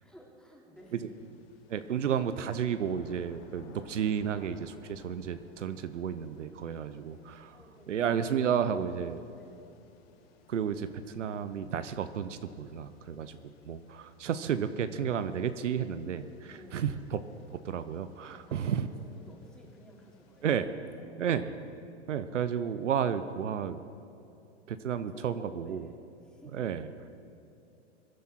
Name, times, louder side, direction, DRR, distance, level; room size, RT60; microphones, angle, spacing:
voice 1, 0.0-1.2 7.5-8.2 9.3-9.6 16.4-16.8 18.2-20.6 21.0-21.2 24.9-26.7, equal, ahead, -2 dB, 3.0 m, -54 dB
sound 1, 0.8-20.6, left 5 dB, 55° left, 1.8 m, -58 dB
voice 2, 1.7-7.6 7.9-9.2 10.5-13.4 13.6-17.2 17.5-18.9 20.4-20.7 21.2-21.5 22.1-23.8 24.7-25.9 26.5-26.9, right 8 dB, 80° right, 11 dB, 0.9 m, -32 dB
23.0 x 10.5 x 4.4 m, 2.8 s
hypercardioid pair, 105°, 36 cm